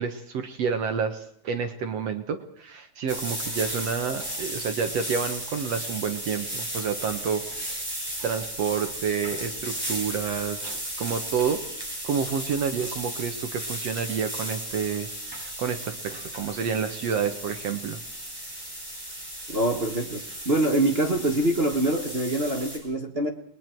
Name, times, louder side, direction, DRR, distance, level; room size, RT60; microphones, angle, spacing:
voice 1, 0.0-7.9 8.2-11.6 12.0-18.0, right 6 dB, 60° right, 7 dB, 2.0 m, -29 dB
sound 1, 3.1-22.8, right 1 dB, 5° right, 6.9 m, -35 dB
voice 2, 19.5-23.3, right 1 dB, 35° right, 2 dB, 0.9 m, -25 dB
29.5 x 21.5 x 4.6 m, 0.69 s
omnidirectional pair, 3.7 m